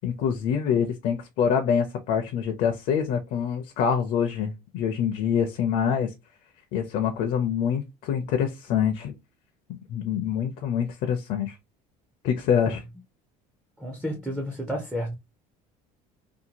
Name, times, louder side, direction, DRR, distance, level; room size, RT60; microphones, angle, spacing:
voice 1, 0.0-6.1 6.7-9.1 9.7-11.6 12.2-12.8, left 7 dB, 60° left, 0.5 m, -25 dB
voice 2, 13.8-15.2, equal, 5° right, 0.4 m, -31 dB
2.7 x 2.2 x 2.8 m
cardioid pair, 170°, 15 cm